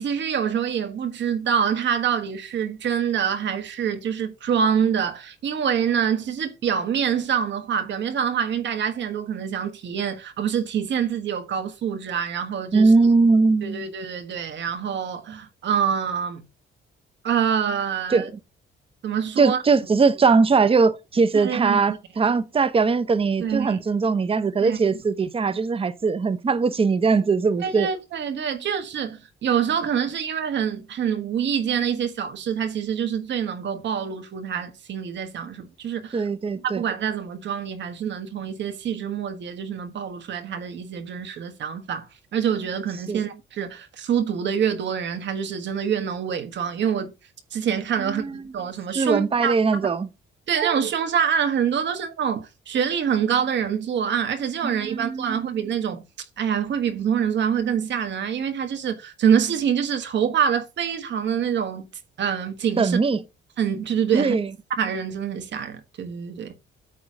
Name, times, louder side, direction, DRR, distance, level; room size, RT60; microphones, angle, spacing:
voice 1, 0.0-12.9 13.6-16.4 17.2-18.3 19.0-19.6 21.3-21.8 22.2-22.3 23.4-23.8 24.6-24.8 27.6-36.3 36.7-42.1 42.3-47.1 47.5-49.5 50.5-56.0 56.4-61.9 62.2-63.0 63.6-64.4 64.8-66.5, right 8 dB, 65° right, 1.3 m, -25 dB
voice 2, 12.7-13.9 18.1-18.3 19.4-27.9 36.1-36.8 43.1-43.2 48.0-48.4 48.9-50.1 54.6-55.6 62.8-63.2 64.1-64.5, right 4 dB, 30° right, 0.8 m, -21 dB
8.8 x 3.0 x 6.0 m
cardioid pair, 90°, 20 cm